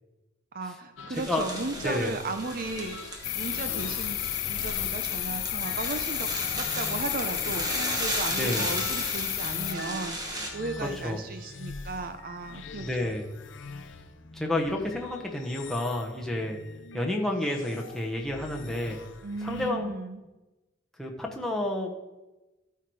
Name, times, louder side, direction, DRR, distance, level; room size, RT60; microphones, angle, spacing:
voice 1, 0.5-3.0 3.3-4.2 4.5-10.2 10.5-13.1 19.2-20.2, right 3 dB, 45° right, 8 dB, 0.6 m, -35 dB
sound 1, 1.0-19.7, left 4 dB, 70° left, 0.7 m, -44 dB
voice 2, 1.1-1.4 1.8-2.1 8.3-8.7 11.0-11.2 12.8-13.2 14.3-16.6 16.9-19.0 19.4-19.9 21.0-21.9, left 1 dB, ahead, -1 dB, 0.9 m, -30 dB
sound 2, 1.1-10.5, right 1 dB, 20° right, 1.3 m, -36 dB
sound 3, 3.2-9.7, left 16 dB, 90° left, 0.3 m, -32 dB
13.0 x 4.6 x 4.7 m, 1.1 s
head